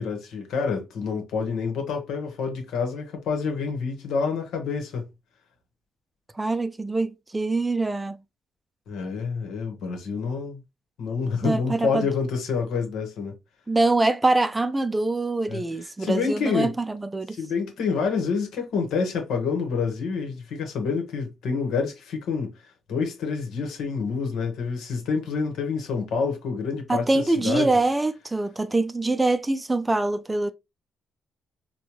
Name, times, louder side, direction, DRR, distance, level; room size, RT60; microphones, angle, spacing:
voice 1, 0.0-5.1 8.9-10.6 11.0-13.3 15.5-16.7 17.3-22.5 22.9-27.7, left 5 dB, 80° left, 1.1 m, -28 dB
voice 2, 6.4-8.2 11.4-12.1 13.7-17.4 26.9-30.5, right 2 dB, 15° right, 0.4 m, -24 dB
4.2 x 2.2 x 3.0 m
cardioid pair, 90°, 0 cm